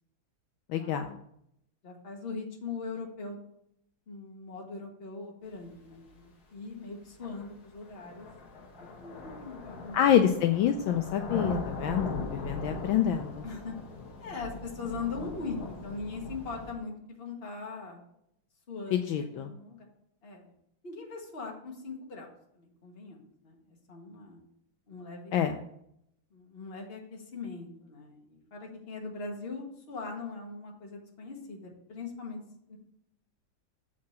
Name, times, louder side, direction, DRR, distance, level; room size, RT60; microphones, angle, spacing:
voice 1, 0.7-1.2 9.9-13.4 18.9-19.5 25.3-25.6, left 9 dB, 75° left, 6 dB, 1.3 m, -27 dB
voice 2, 1.8-3.4 4.1-8.3 8.8-10.0 13.4-13.7 14.2-18.0 18.7-19.1 19.3-19.9 20.2-20.5 20.8-22.3 22.5-24.4 24.9-25.4 26.3-32.4 32.7-32.8, left 4 dB, 30° left, 0 dB, 1.5 m, -41 dB
sound 1, 6.1-6.2 7.2-16.7, left 2 dB, 50° left, 1.7 m, -40 dB
7.2 x 4.7 x 5.7 m, 0.75 s
omnidirectional pair, 2.3 m